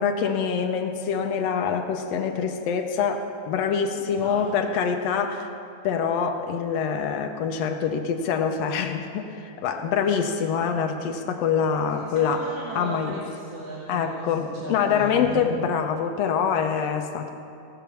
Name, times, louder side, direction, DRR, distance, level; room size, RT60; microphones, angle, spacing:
voice 1, 0.0-5.5 5.8-12.4 12.7-13.2 13.9-17.3, left 6 dB, 75° left, 5 dB, 1.6 m, -25 dB
voice 2, 4.0-4.7 11.9-15.5, right 2 dB, 55° right, -6 dB, 2.3 m, -37 dB
17.0 x 5.8 x 7.0 m, 2.6 s
omnidirectional pair, 3.4 m